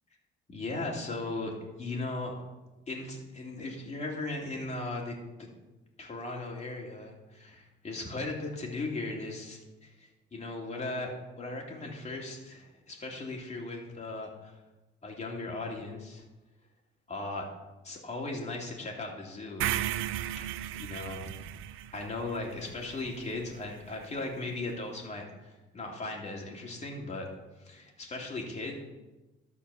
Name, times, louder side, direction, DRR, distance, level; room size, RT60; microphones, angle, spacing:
voice 1, 0.5-2.3 2.9-5.5 6.0-11.1 11.3-14.5 15.0-16.2 17.1-17.5 17.8-19.8 20.8-21.3 21.9-27.3 27.6-28.8, left 2 dB, 35° left, 0 dB, 2.8 m, -37 dB
sound 1, 19.6-23.7, right 13 dB, 90° right, 0.5 m, -35 dB
12.5 x 4.7 x 7.1 m, 1.1 s
cardioid pair, 90°, 20 cm